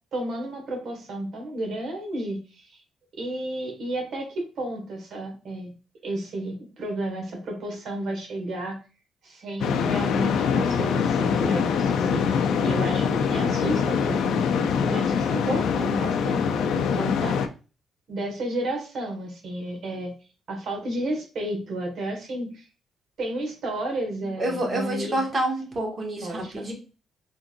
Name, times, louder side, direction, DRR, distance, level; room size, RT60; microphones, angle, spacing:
voice 1, 0.1-2.8 3.2-5.7 6.0-8.8 9.2-14.4 14.9-17.4 18.1-20.1 20.5-22.6 23.2-25.2 26.2-26.7, right 1 dB, 65° right, 2 dB, 1.6 m, -32 dB
sound 1, 9.6-17.5, left 6 dB, 75° left, 0.4 m, -24 dB
voice 2, 24.4-26.7, right 1 dB, 40° right, 0 dB, 1.7 m, -28 dB
3.8 x 3.6 x 2.5 m, 0.34 s
cardioid pair, 90°, 0 cm